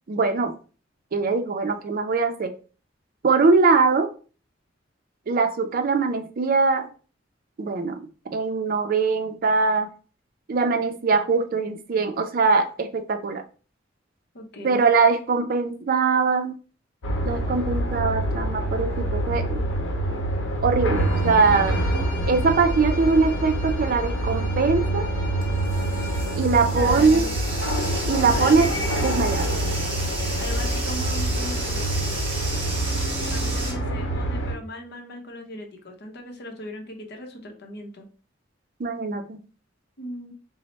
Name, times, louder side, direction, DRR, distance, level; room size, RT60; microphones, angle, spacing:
voice 1, 0.1-0.5 1.1-2.5 3.2-4.1 5.3-6.9 7.6-8.0 8.3-9.9 10.5-13.4 14.6-16.5 17.2-19.6 20.6-21.9 22.3-25.1 26.4-27.2 28.1-28.7 29.0-29.5 38.8-39.4, right 4 dB, 50° right, 8 dB, 0.4 m, -22 dB
voice 2, 14.3-14.8 26.6-27.3 28.3-28.6 30.4-32.2 33.3-38.1 40.0-40.3, left 1 dB, 60° left, 3 dB, 0.7 m, -38 dB
sound 1, 17.0-34.6, right 1 dB, 90° left, 0.8 m, -26 dB
Bowed string instrument, 20.9-26.4, left 2 dB, 15° left, 1.4 m, -40 dB
Bathtub (filling or washing), 24.5-33.7, right 2 dB, 30° right, 1.1 m, -34 dB
3.1 x 2.0 x 4.0 m, 0.37 s
head